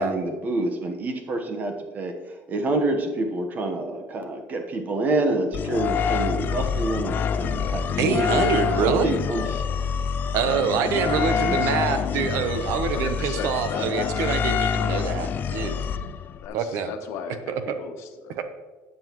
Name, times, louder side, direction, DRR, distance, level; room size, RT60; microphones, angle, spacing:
voice 1, 0.0-2.2 2.5-8.4 8.8-9.6 10.8-12.0, right 2 dB, 35° right, 4 dB, 1.2 m, -27 dB
sound 1, 5.5-16.5, left 7 dB, 40° left, 0.4 m, -26 dB
voice 2, 8.0-9.1 10.3-15.8 16.5-16.9 17.5-17.8 18.4-18.5, right 6 dB, 75° right, 9 dB, 0.9 m, -25 dB
voice 3, 12.9-14.3 16.3-18.4, left 6 dB, 70° left, 5 dB, 1.2 m, -35 dB
12.5 x 8.0 x 3.1 m, 1.3 s
cardioid pair, 140°, 5 cm